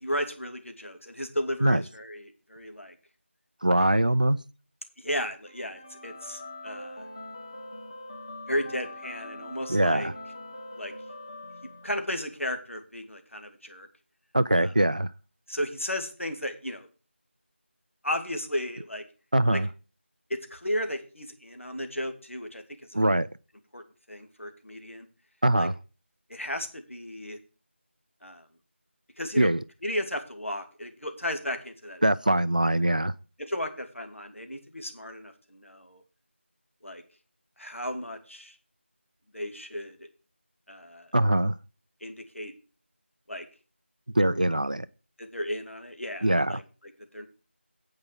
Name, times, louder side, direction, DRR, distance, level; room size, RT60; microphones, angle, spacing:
voice 1, 0.0-2.9 3.8-3.9 5.0-7.0 8.5-10.1 10.8-10.9 11.8-13.9 14.6-14.7 15.5-16.9 18.0-19.0 19.5-19.6 20.3-22.6 22.9-23.0 23.7-23.8 24.1-25.1 25.6-25.7 26.3-27.4 28.2-28.4 29.2-29.5 29.8-32.0 33.4-36.0 36.8-37.0 37.6-38.5 39.3-40.1 40.7-41.1 42.0-42.5 43.3-43.4 45.2-46.6 47.1-47.3, equal, 85° left, 2.6 m, -34 dB
voice 2, 3.6-4.4 9.7-10.1 14.3-15.1 19.3-19.7 22.9-23.3 25.4-25.8 29.4-29.6 32.0-33.1 41.1-41.6 44.1-44.9 46.2-46.6, right 1 dB, 40° right, 0.4 m, -22 dB
sound 1, 5.5-12.4, left 1 dB, 25° left, 1.2 m, -43 dB
8.7 x 5.7 x 7.6 m
figure-of-eight pair, 175°, 7 cm